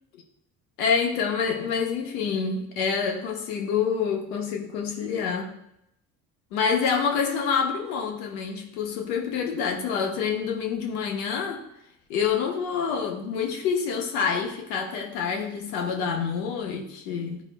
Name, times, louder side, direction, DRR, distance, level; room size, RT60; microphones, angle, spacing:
voice 1, 0.8-5.5 6.5-11.6 12.1-17.4, left 6 dB, 70° left, 3 dB, 1.2 m, -27 dB
11.5 x 4.9 x 2.2 m, 0.78 s
figure-of-eight pair, 50°, 46 cm